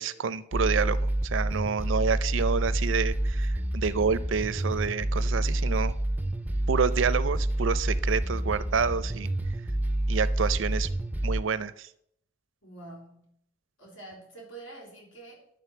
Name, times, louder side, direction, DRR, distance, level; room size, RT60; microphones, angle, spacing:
voice 1, 0.0-5.9 6.7-9.3 10.1-10.9 11.2-11.9, right 5 dB, 75° right, 16 dB, 0.5 m, -28 dB
sound 1, 0.5-11.4, right 1 dB, 10° right, 0.4 m, -28 dB
voice 2, 12.6-13.3 13.8-15.4, right 2 dB, 85° left, -2 dB, 3.6 m, -46 dB
11.0 x 3.8 x 6.8 m, 0.72 s
head